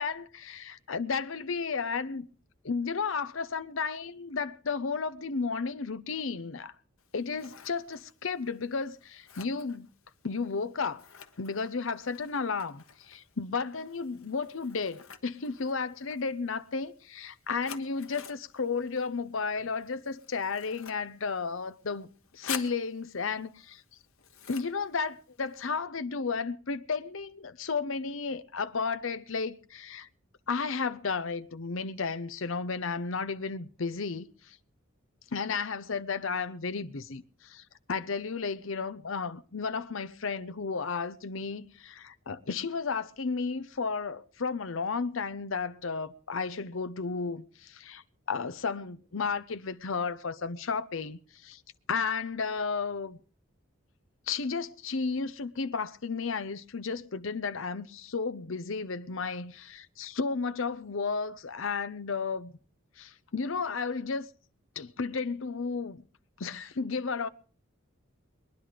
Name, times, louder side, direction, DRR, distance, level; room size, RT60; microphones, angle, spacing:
voice 1, 0.0-2.3 2.6-6.7 7.1-9.9 10.2-11.0 11.4-23.8 24.5-30.1 30.5-34.6 35.3-37.6 37.9-51.6 51.9-53.2 54.3-62.5 63.0-64.3 64.8-66.0 66.4-67.3, left 4 dB, 70° left, 0.7 m, -33 dB
Scissors, 7.0-25.8, left 8 dB, 85° left, 1.3 m, -49 dB
21.5 x 10.5 x 5.0 m
head